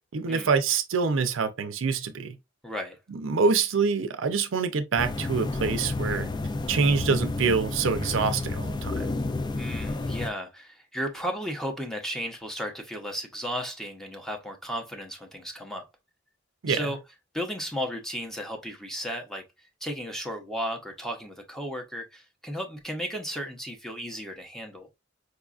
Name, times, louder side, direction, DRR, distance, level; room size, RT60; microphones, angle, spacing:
voice 1, 0.1-2.4 3.1-6.3 6.7-9.1 16.6-16.8, right 5 dB, 70° right, 0.5 m, -25 dB
voice 2, 2.6-3.0 9.6-15.8 16.7-17.0 17.3-19.4 19.8-24.9, equal, ahead, 0.7 m, -34 dB
sound 1, 5.0-10.3, left 2 dB, 20° left, 0.3 m, -31 dB
4.8 x 2.4 x 2.4 m
head